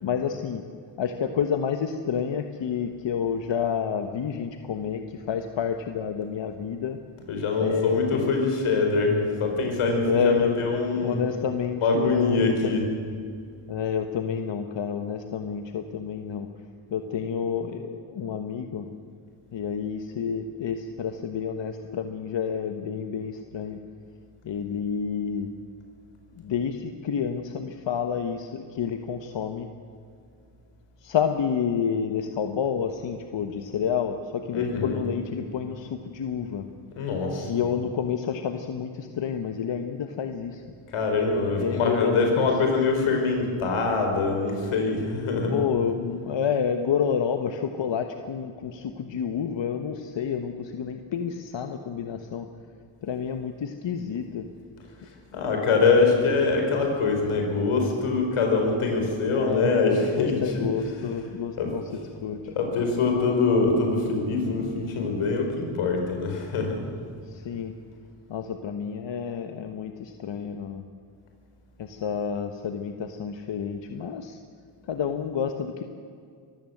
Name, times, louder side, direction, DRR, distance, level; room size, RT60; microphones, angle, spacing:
voice 1, 0.0-0.6 1.0-7.0 7.6-8.3 10.0-10.6 10.9-12.7 13.7-16.5 16.9-18.9 19.5-23.8 24.4-25.5 26.4-29.7 31.0-36.6 37.5-40.6 41.6-42.5 45.5-52.5 53.0-54.4 59.4-61.8 62.2-62.5 67.2-67.7 68.3-70.8 71.8-74.4 74.9-75.8, left 7 dB, 60° left, 6 dB, 1.3 m, -29 dB
voice 2, 7.3-11.2 11.8-12.8 34.5-35.0 37.0-37.5 40.9-45.6 55.3-60.7 61.6-61.7 62.5-66.8, left 4 dB, 85° left, 2 dB, 4.9 m, -24 dB
24.0 x 14.5 x 7.9 m, 2.3 s
cardioid pair, 85°, 49 cm